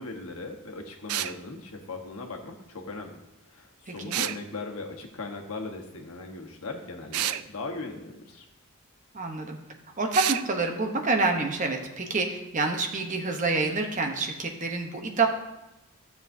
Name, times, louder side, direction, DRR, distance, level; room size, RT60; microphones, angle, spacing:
voice 1, 0.0-3.2 3.5-8.4, left 3 dB, 80° left, 3 dB, 1.2 m, -38 dB
sound 1, 1.1-1.4 4.1-4.4 7.1-7.4 10.1-10.4, right 13 dB, 90° right, 0.4 m, -28 dB
voice 2, 3.9-4.2 9.1-9.6 10.0-15.3, right 3 dB, 35° right, 3 dB, 0.9 m, -27 dB
12.5 x 7.0 x 2.7 m, 0.94 s
head